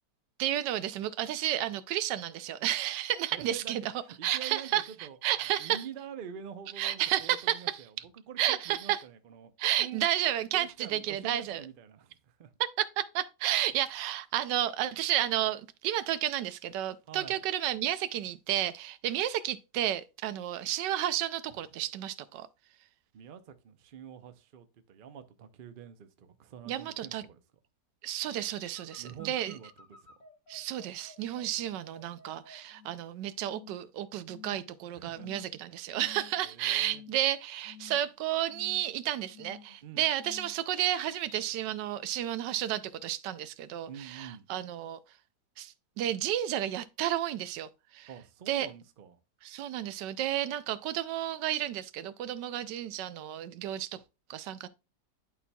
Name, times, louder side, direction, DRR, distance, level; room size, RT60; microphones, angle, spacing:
voice 1, 0.4-3.8 4.2-4.9 5.2-5.8 6.8-7.8 8.4-9.0 9.6-11.6 12.8-22.5 26.7-27.2 28.0-29.6 30.5-45.0 45.6-48.1 48.5-48.7 49.4-54.0 54.3-54.7, right 12 dB, 85° right, 1.2 m, -32 dB
voice 2, 3.3-3.8 4.2-5.2 5.6-9.5 9.8-10.0 10.5-12.5 17.1-17.4 23.1-27.4 29.0-29.7 34.9-35.4 36.4-37.0 39.8-40.1 43.9-44.5 48.1-49.2, right 8 dB, 65° right, 0.5 m, -46 dB
sound 1, 28.1-33.1 33.4-33.9 34.3-34.8 35.1-35.6 35.9-36.5 36.8-37.3 37.6-38.2 38.5-39.0 39.3-39.8 40.2-40.6 41.0-41.5, left 6 dB, 55° left, 1.3 m, -52 dB
11.0 x 4.2 x 2.2 m
omnidirectional pair, 1.8 m